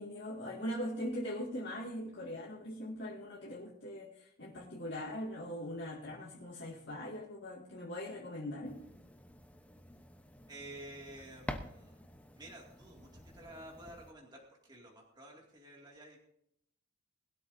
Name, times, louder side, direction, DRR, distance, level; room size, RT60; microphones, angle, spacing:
voice 1, 0.0-8.8, equal, 55° left, -5 dB, 2.3 m, -41 dB
sound 1, 8.6-14.1, left 1 dB, 5° left, 0.9 m, -49 dB
voice 2, 10.5-12.0 12.3-16.2, right 1 dB, 20° right, -2 dB, 2.3 m, -51 dB
20.5 x 12.5 x 2.7 m, 0.72 s
head